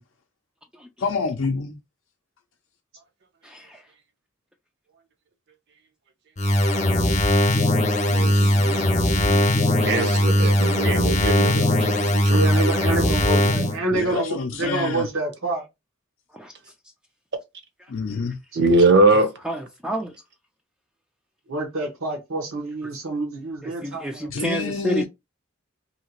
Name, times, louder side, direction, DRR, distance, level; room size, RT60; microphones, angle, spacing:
voice 1, 1.0-1.8 8.1-9.1 13.9-15.1 17.9-18.4 24.3-25.0, left 4 dB, 65° left, 0.5 m, -28 dB
voice 2, 3.4-3.8 8.6-8.9 16.3-16.5 18.3-18.4 19.1-20.1 22.8-22.9 23.6-25.0, equal, 5° right, 0.3 m, -31 dB
sound 1, 6.4-13.8, left 1 dB, 35° left, 0.7 m, -20 dB
voice 3, 8.1-12.6 13.5-13.7 18.6-19.3, right 2 dB, 55° right, 0.7 m, -22 dB
voice 4, 12.3-15.6 21.5-24.3, right 2 dB, 80° right, 1.0 m, -27 dB
2.8 x 2.8 x 2.9 m
head